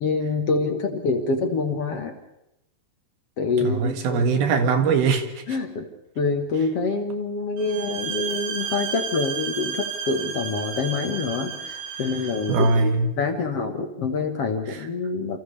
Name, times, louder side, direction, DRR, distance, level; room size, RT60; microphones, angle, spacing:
voice 1, 0.0-2.2 3.4-4.2 5.5-5.9 6.2-15.4, left 4 dB, 55° left, 4 dB, 2.0 m, -26 dB
voice 2, 3.6-5.4 12.5-13.1 14.7-14.8, right 4 dB, 90° right, 5 dB, 3.8 m, -21 dB
sound 1, 7.6-12.8, right 6 dB, 55° right, 3.6 m, -32 dB
28.5 x 28.0 x 3.4 m, 0.88 s
omnidirectional pair, 4.2 m